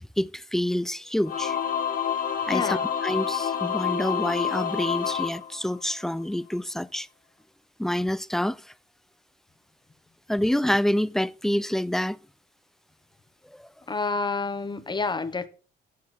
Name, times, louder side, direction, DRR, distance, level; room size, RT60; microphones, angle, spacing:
voice 1, 0.0-1.6 2.5-2.8 3.0-7.1 7.8-8.6 10.3-12.2, left 1 dB, ahead, 0.3 m, -27 dB
Singing / Musical instrument, 1.3-6.1, left 8 dB, 45° left, 1.5 m, -28 dB
voice 2, 2.5-2.9 13.9-15.5, left 4 dB, 20° left, 0.9 m, -29 dB
9.3 x 7.4 x 4.3 m
cardioid pair, 90°, 20 cm